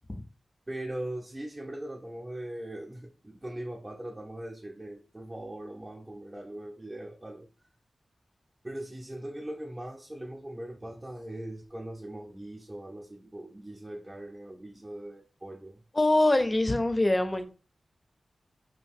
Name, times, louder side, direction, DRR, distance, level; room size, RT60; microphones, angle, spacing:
voice 1, 0.7-7.5 8.6-15.8, right 1 dB, 25° right, 0.5 m, -40 dB
voice 2, 15.9-17.5, left 1 dB, 25° left, 0.4 m, -24 dB
2.7 x 2.5 x 3.5 m
cardioid pair, 60°, 0 cm